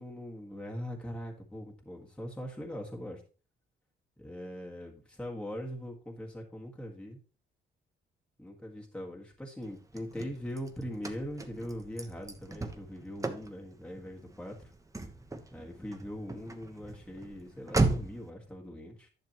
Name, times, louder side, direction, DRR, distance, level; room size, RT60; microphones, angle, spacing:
voice 1, 0.0-3.2 4.2-7.2 8.4-14.7 15.5-19.1, equal, 5° left, -1 dB, 1.8 m, -41 dB
Car / Slam, 9.6-18.3, right 3 dB, 15° right, 1.1 m, -36 dB
10.5 x 6.6 x 3.0 m, 0.37 s
cardioid pair, 90°, 20 cm